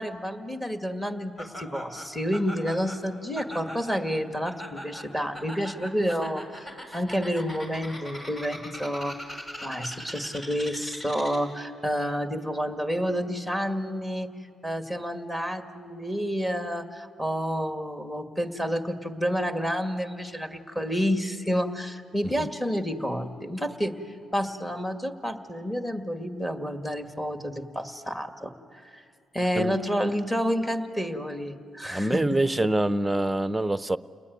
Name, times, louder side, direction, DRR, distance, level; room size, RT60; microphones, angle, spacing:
voice 1, 0.0-14.3 14.6-29.0 29.3-32.4, equal, 10° left, 5 dB, 2.0 m, -29 dB
Laughter, 1.4-11.6, equal, 30° left, 5.7 m, -41 dB
voice 2, 31.8-34.0, right 1 dB, 10° right, 13 dB, 0.7 m, -25 dB
30.0 x 20.5 x 9.5 m, 2.3 s
cardioid pair, 90°, 0 cm